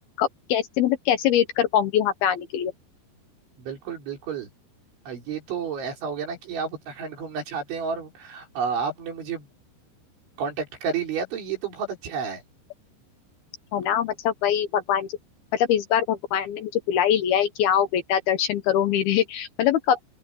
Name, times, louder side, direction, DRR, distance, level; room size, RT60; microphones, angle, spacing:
voice 1, 0.2-2.7 13.7-15.1 15.5-20.0, left 10 dB, 70° left, 2.6 m, -23 dB
voice 2, 3.6-4.5 5.1-9.5 10.4-12.4, right 6 dB, 85° right, 7.5 m, -31 dB
open air
omnidirectional pair, 5.2 m